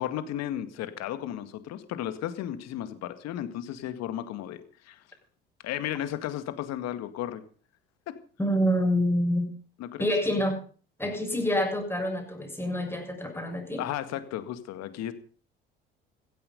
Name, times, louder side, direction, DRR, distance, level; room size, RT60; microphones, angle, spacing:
voice 1, 0.0-5.0 5.6-7.4 8.1-8.2 9.8-10.1 13.8-15.1, left 11 dB, 60° left, 11 dB, 2.0 m, -34 dB
voice 2, 8.4-9.5 10.0-10.6 11.0-13.8, equal, 10° left, 3 dB, 6.9 m, -27 dB
15.5 x 14.0 x 5.4 m, 0.43 s
hypercardioid pair, 65°, 30 cm